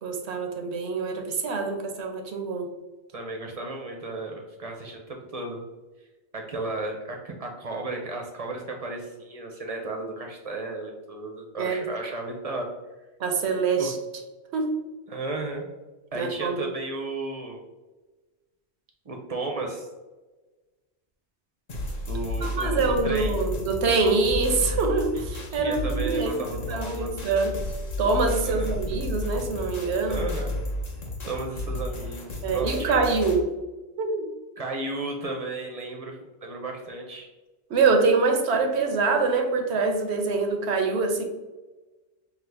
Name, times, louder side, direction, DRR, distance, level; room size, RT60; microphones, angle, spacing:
voice 1, 0.0-2.8 11.6-11.8 13.2-14.0 14.5-14.8 16.1-16.6 22.4-27.6 28.0-30.2 32.4-33.5 34.0-34.3 37.7-41.2, right 4 dB, 75° right, 4 dB, 0.9 m, -25 dB
voice 2, 3.1-5.6 6.3-12.7 13.8-13.9 15.1-15.7 16.1-17.6 19.1-19.9 22.1-23.3 25.5-27.1 28.4-28.8 30.1-30.5 31.2-33.0 34.6-37.3, right 2 dB, 40° right, 1 dB, 0.6 m, -34 dB
sound 1, 21.7-33.4, left 1 dB, 45° left, 0.7 m, -32 dB
5.8 x 2.1 x 3.3 m, 1.2 s
omnidirectional pair, 1.1 m